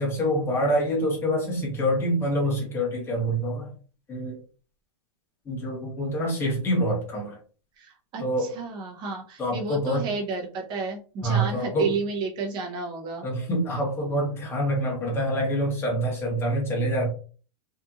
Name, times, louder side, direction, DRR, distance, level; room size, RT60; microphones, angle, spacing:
voice 1, 0.0-3.7 4.1-4.4 5.5-7.4 8.2-8.5 9.4-10.1 11.2-11.9 13.2-17.1, equal, 15° left, -2 dB, 1.0 m, -26 dB
voice 2, 7.8-13.3, right 4 dB, 25° right, 0 dB, 0.8 m, -31 dB
2.8 x 2.5 x 2.4 m, 0.38 s
supercardioid pair, 150°, 17 cm